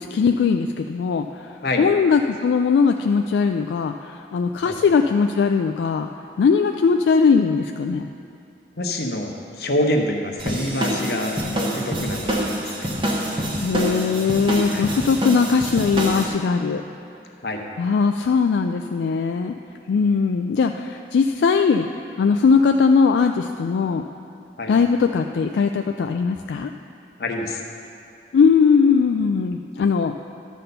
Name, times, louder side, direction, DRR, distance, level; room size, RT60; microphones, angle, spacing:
voice 1, 0.0-6.1 6.4-8.1 13.6-16.8 17.8-19.5 19.9-21.9 22.2-24.0 24.7-26.7 28.3-30.1, left 5 dB, 85° left, 5 dB, 0.3 m, -20 dB
voice 2, 8.8-12.9 14.7-14.9 17.4-17.6 24.6-24.7 27.2-27.6, left 1 dB, 60° left, 2 dB, 0.9 m, -26 dB
sound 1, 10.4-16.3, equal, 30° right, 1.0 m, -26 dB
12.0 x 4.2 x 6.6 m, 2.5 s
head